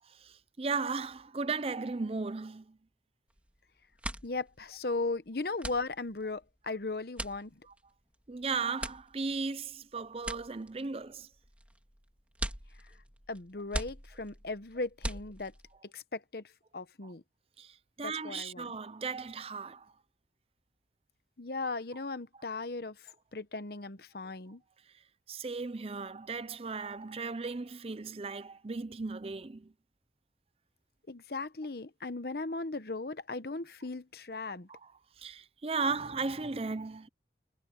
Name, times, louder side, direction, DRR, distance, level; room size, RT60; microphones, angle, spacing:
voice 1, 0.1-2.8 8.3-11.3 17.0-17.1 17.6-19.9 25.3-29.7 34.7-34.8 35.2-37.1, right 4 dB, 30° right, 0.5 m, -36 dB
sound 1, 3.3-3.6 3.8-15.8, right 1 dB, 5° right, 3.3 m, -42 dB
voice 2, 4.2-7.6 13.3-15.5 15.8-16.4 16.7-17.2 18.0-18.8 21.4-23.0 23.3-24.6 31.1-34.7, left 3 dB, 55° left, 1.0 m, -37 dB
head